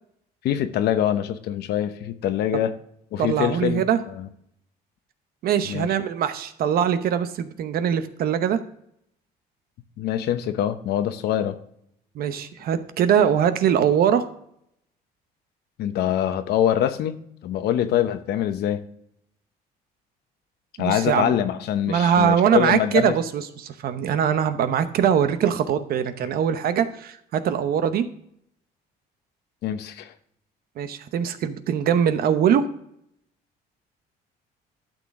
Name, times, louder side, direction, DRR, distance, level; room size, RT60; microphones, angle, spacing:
voice 1, 0.4-2.7 3.1-3.8 4.2-4.3 5.6-5.9 10.0-11.6 15.8-17.1 17.4-18.8 20.8-23.1 29.6-30.1, left 10 dB, 75° left, 10 dB, 0.9 m, -24 dB
voice 2, 3.2-4.0 5.4-8.6 12.1-14.2 20.8-21.3 21.9-28.1 30.8-32.7, right 8 dB, 65° right, 11 dB, 0.9 m, -22 dB
12.0 x 6.6 x 3.7 m, 0.71 s
cardioid pair, 110°, 17 cm